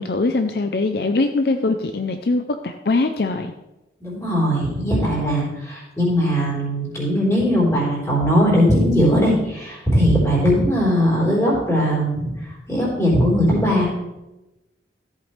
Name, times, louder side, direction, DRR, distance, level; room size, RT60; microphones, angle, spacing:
voice 1, 0.0-3.5, left 3 dB, 60° left, 7 dB, 0.5 m, -22 dB
voice 2, 4.0-12.3 12.7-13.9, equal, 15° left, -5 dB, 3.9 m, -19 dB
14.0 x 8.3 x 3.3 m, 0.98 s
head